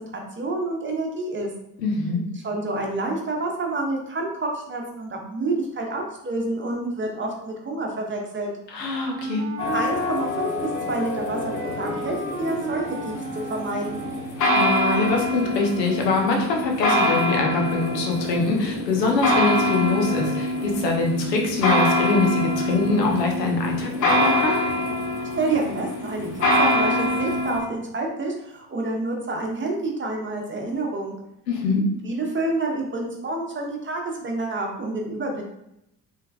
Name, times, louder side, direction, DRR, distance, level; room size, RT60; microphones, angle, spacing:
voice 1, 0.0-1.5 2.4-8.5 9.7-10.5 10.9-14.0 25.3-31.1 32.0-35.4, right 2 dB, 25° right, 0 dB, 1.0 m, -28 dB
voice 2, 1.8-2.2 8.7-9.4 14.5-24.6 31.5-31.8, left 3 dB, 75° left, 1 dB, 1.0 m, -23 dB
Wind instrument woodwind instrument, 8.8-14.6, right 4 dB, 45° right, 0.6 m, -34 dB
sound 1, 9.6-27.6, left 1 dB, 35° left, 1.3 m, -25 dB
4.3 x 3.4 x 2.3 m, 0.82 s
figure-of-eight pair, 50°, 49 cm